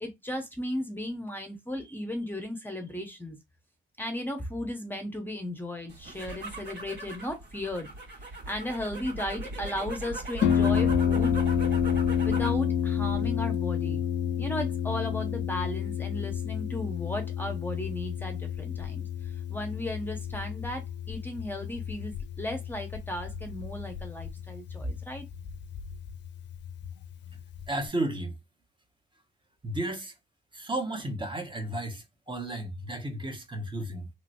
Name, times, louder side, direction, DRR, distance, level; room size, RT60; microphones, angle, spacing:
voice 1, 0.0-3.4 4.0-7.9 8.2-11.4 12.2-14.0 14.4-19.1 19.5-25.2, left 1 dB, 10° left, 0.8 m, -35 dB
sound 1, 5.9-12.6 13.0-13.5, right 2 dB, 60° right, 2.1 m, -39 dB
Harp, 10.4-27.9, left 8 dB, 60° left, 0.5 m, -30 dB
voice 2, 27.7-28.4 29.6-30.1 30.5-34.1, right 1 dB, 25° right, 1.0 m, -33 dB
3.0 x 2.9 x 2.6 m
cardioid pair, 90°, 20 cm